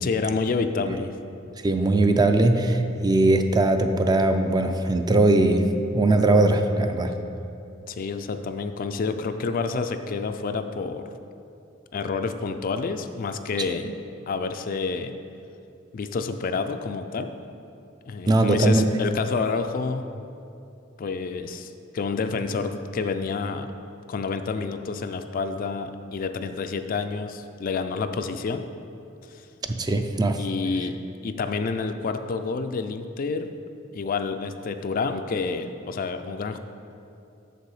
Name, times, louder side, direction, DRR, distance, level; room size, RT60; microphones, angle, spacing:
voice 1, 0.0-1.1 7.9-11.1 11.9-13.9 14.3-15.1 15.9-17.3 18.1-20.1 21.0-23.7 24.1-28.7 29.9-30.0 30.4-31.0 31.2-33.6 33.9-36.6, left 4 dB, 45° left, 8 dB, 0.4 m, -28 dB
voice 2, 1.6-7.1 18.3-18.9 29.7-30.4, right 2 dB, 20° right, 6 dB, 0.4 m, -20 dB
6.7 x 6.7 x 4.8 m, 2.7 s
head